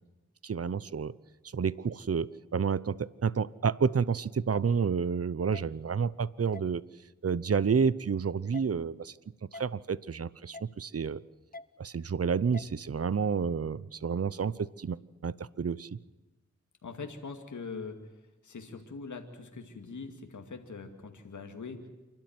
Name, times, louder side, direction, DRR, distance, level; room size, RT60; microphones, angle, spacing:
voice 1, 0.4-1.1 1.5-6.8 7.2-9.1 9.5-11.2 11.8-16.0, right 6 dB, 55° right, 19 dB, 0.8 m, -30 dB
sound 1, 4.5-4.6 5.5-5.6 6.5-6.7 7.5-7.6 8.5-8.7 9.5-9.7 10.5-10.7 11.5-11.7 12.5-12.7, left 2 dB, 30° left, 0.9 m, -44 dB
voice 2, 16.8-18.0 18.4-21.9, left 4 dB, 85° left, 5 dB, 2.3 m, -42 dB
28.0 x 12.5 x 9.5 m, 1.1 s
cardioid pair, 40°, 29 cm